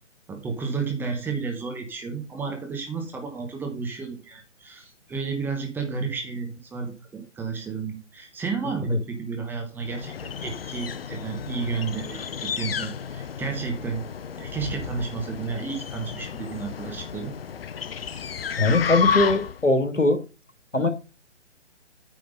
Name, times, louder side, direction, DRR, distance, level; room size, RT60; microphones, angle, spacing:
voice 1, 0.3-14.0 14.4-17.3, right 5 dB, 5° right, 1.1 m, -32 dB
sound 1, 9.8-19.7, left 7 dB, 50° left, 0.8 m, -32 dB
voice 2, 18.6-20.2 20.7-20.9, left 2 dB, 90° left, 2.5 m, -21 dB
9.2 x 5.7 x 5.4 m
figure-of-eight pair, 140°, 37 cm